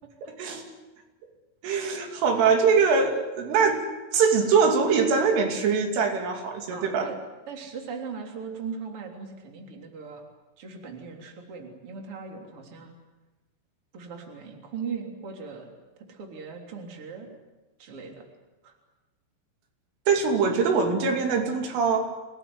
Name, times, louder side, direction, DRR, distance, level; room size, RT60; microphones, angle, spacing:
voice 1, 0.2-0.6 1.6-3.8 4.1-7.1 20.1-22.1, right 5 dB, 85° right, 3 dB, 5.3 m, -23 dB
voice 2, 6.7-7.2 7.5-10.3 10.6-13.0 13.9-15.8 16.1-17.3 17.8-18.2 18.6-18.7, right 5 dB, 30° right, 2 dB, 3.8 m, -39 dB
26.5 x 19.0 x 9.7 m, 1.1 s
omnidirectional pair, 5.5 m